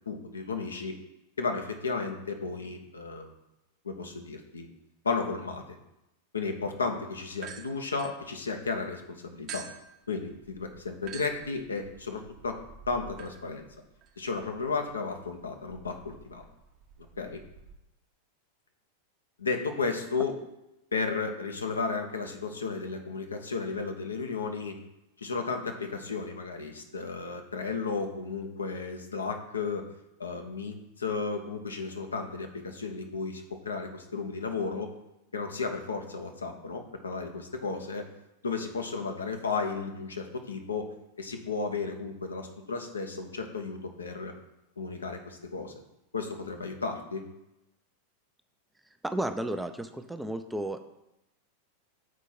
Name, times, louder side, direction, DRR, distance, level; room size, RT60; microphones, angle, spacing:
voice 1, 0.1-1.0 1.4-3.3 3.8-4.7 5.0-5.8 6.3-9.7 10.1-12.6 12.9-13.7 14.2-16.4 17.2-17.4 19.4-20.4 20.9-24.8 25.2-29.9 30.2-34.9 35.3-38.1 38.4-44.3 44.8-45.7 46.1-47.3, left 4 dB, 75° left, 5 dB, 0.8 m, -34 dB
sound 1, 7.4-8.8 9.5-17.8, right 7 dB, 35° right, 0.7 m, -49 dB
voice 2, 49.0-50.8, right 1 dB, 5° right, 8 dB, 0.4 m, -33 dB
6.3 x 4.5 x 4.3 m, 0.91 s
figure-of-eight pair, 90°, 0 cm